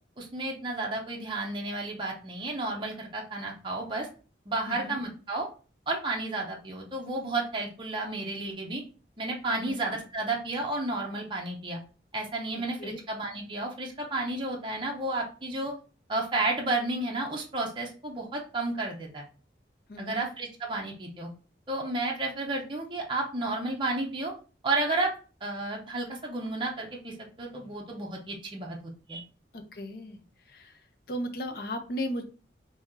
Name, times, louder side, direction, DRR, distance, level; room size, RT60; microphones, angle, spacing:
voice 1, 0.2-4.1 4.5-5.5 5.9-8.8 9.2-11.8 12.1-15.7 16.1-19.2 20.0-21.3 21.7-24.3 24.6-25.1 25.4-29.2, right 2 dB, 25° right, -1 dB, 0.6 m, -32 dB
voice 2, 4.7-5.0 9.5-9.8 12.8-13.0 19.9-20.3 29.5-30.2 30.5-30.7 31.1-32.2, equal, 55° left, 6 dB, 0.5 m, -35 dB
2.9 x 2.7 x 3.6 m, 0.37 s
head